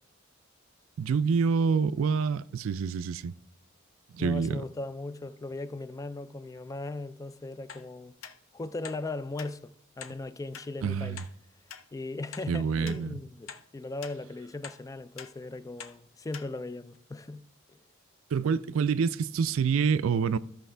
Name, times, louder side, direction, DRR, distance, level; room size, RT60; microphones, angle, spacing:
voice 1, 1.0-3.3 4.1-4.6 10.8-11.2 12.5-13.2 18.3-20.4, right 5 dB, 75° right, 0.4 m, -27 dB
voice 2, 4.2-8.2 8.5-11.2 11.9-17.4 17.7-17.8, left 2 dB, 15° left, 0.3 m, -38 dB
sound 1, 7.7-7.9 8.2-8.4 8.8-9.0 9.4-9.5 10.0-10.2 10.5-10.7 11.2-11.3 11.7-11.8 12.3-12.5 12.9-13.0 13.5-13.6 14.0-14.2 14.6-14.8 15.2-15.3 15.8-16.0 16.3-16.5 16.9-17.0, left 7 dB, 70° left, 0.6 m, -44 dB
14.0 x 5.7 x 3.3 m
head